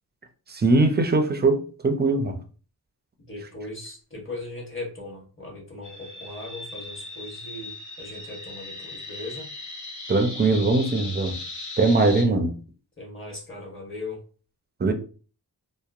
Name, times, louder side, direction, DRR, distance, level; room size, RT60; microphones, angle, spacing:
voice 1, 0.5-2.4 10.1-11.4 11.8-12.5 14.8-14.9, right 3 dB, 25° right, 0.4 m, -21 dB
voice 2, 3.2-7.7 8.0-9.5 13.0-14.2, left 2 dB, 30° left, 1.1 m, -38 dB
sound 1, 5.8-12.2, left 2 dB, 50° left, 0.8 m, -38 dB
2.9 x 2.0 x 2.4 m
cardioid pair, 75°, 39 cm